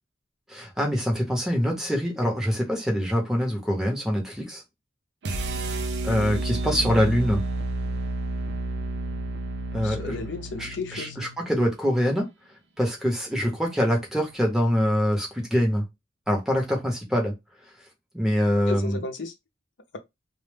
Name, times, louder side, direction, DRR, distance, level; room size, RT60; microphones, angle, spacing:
voice 1, 0.5-4.6 6.0-7.4 9.7-10.2 10.6-12.3 12.8-15.8 16.3-17.3 18.1-19.0, equal, 5° right, 0.7 m, -24 dB
sound 1, 5.2-11.4, right 2 dB, 60° right, 0.4 m, -30 dB
voice 2, 9.8-11.2 18.7-19.3, left 3 dB, 75° left, 0.5 m, -34 dB
2.1 x 2.0 x 3.2 m
head